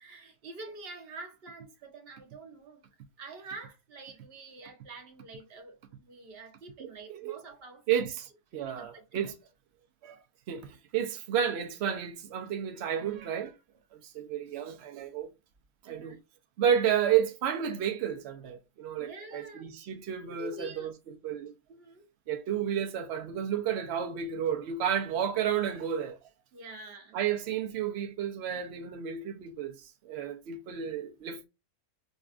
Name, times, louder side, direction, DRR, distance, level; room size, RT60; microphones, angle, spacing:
voice 1, 0.0-2.8 3.2-8.1 8.5-9.3 12.9-13.3 15.8-16.2 19.0-19.7 20.4-21.0 21.7-22.1 26.5-27.2, right 3 dB, 45° right, 0.9 m, -47 dB
voice 2, 6.8-7.4 7.9-8.3 8.5-9.3 10.0-13.5 13.9-15.3 15.8-16.2 16.6-20.9 21.2-21.5 22.3-26.2 27.1-31.5, right 9 dB, 85° right, 0.5 m, -31 dB
5.2 x 2.3 x 2.4 m
omnidirectional pair, 1.8 m